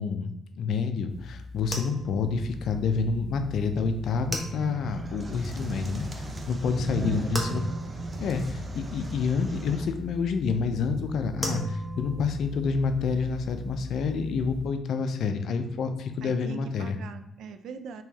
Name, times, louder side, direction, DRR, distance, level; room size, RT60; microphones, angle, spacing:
voice 1, 0.0-7.7 8.2-17.0, left 5 dB, 70° left, 8 dB, 0.4 m, -28 dB
sound 1, 1.1-14.7, left 1 dB, 10° left, 0.9 m, -38 dB
sound 2, 4.6-9.8, right 2 dB, 25° right, 0.5 m, -37 dB
voice 2, 6.9-7.6 16.2-18.0, right 6 dB, 75° right, 9 dB, 0.3 m, -42 dB
3.1 x 3.0 x 3.5 m, 0.83 s
cardioid pair, 90°, 0 cm